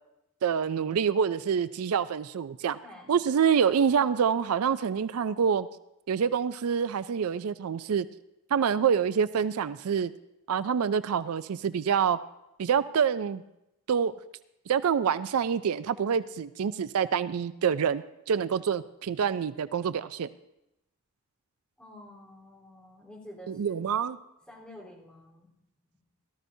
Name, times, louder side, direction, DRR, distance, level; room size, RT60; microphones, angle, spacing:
voice 1, 0.4-2.8 3.1-5.7 6.1-8.1 8.5-10.1 10.5-12.2 12.6-13.4 13.9-14.1 14.7-20.3 23.5-24.2, right 7 dB, 80° right, 14 dB, 0.4 m, -26 dB
voice 2, 2.8-3.2 21.8-23.8 24.5-25.5, left 1 dB, 5° left, -6 dB, 3.7 m, -49 dB
17.5 x 13.0 x 2.7 m, 0.87 s
head